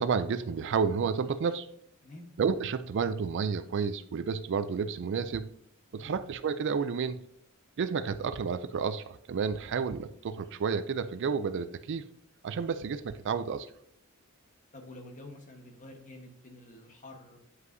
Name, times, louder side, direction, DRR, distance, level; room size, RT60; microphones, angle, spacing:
voice 1, 0.0-1.7 2.4-5.5 5.9-7.2 7.8-12.0 12.4-13.7, right 6 dB, 55° right, 13 dB, 0.4 m, -31 dB
voice 2, 5.9-6.2 14.7-17.4, left 1 dB, 35° left, 4 dB, 1.1 m, -48 dB
9.6 x 5.5 x 2.6 m, 0.69 s
head